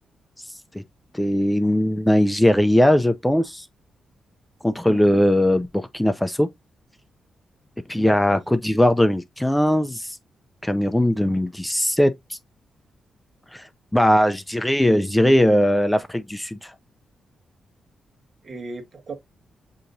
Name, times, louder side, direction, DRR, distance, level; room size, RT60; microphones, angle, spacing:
voice 1, 1.1-3.7 4.6-6.5 7.9-10.2 10.6-12.4 13.5-16.7, left 1 dB, 5° left, 0.4 m, -20 dB
voice 2, 4.8-5.2 7.9-8.4 18.4-19.2, right 3 dB, 50° right, 1.3 m, -36 dB
6.4 x 2.9 x 2.6 m
cardioid pair, 85°, 0 cm